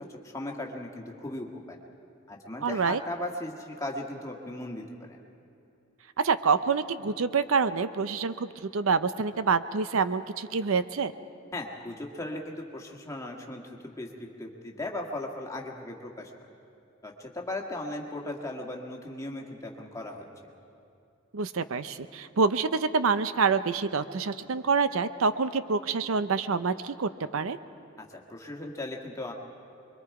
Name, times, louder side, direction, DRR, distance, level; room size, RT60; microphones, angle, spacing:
voice 1, 0.1-1.8 2.3-5.2 11.5-16.3 17.0-20.3 28.0-29.3, left 1 dB, 15° left, 0 dB, 1.7 m, -37 dB
voice 2, 2.6-3.0 6.2-11.1 21.3-27.6, right 5 dB, 75° right, 13 dB, 0.6 m, -27 dB
26.0 x 23.0 x 4.8 m, 2.6 s
head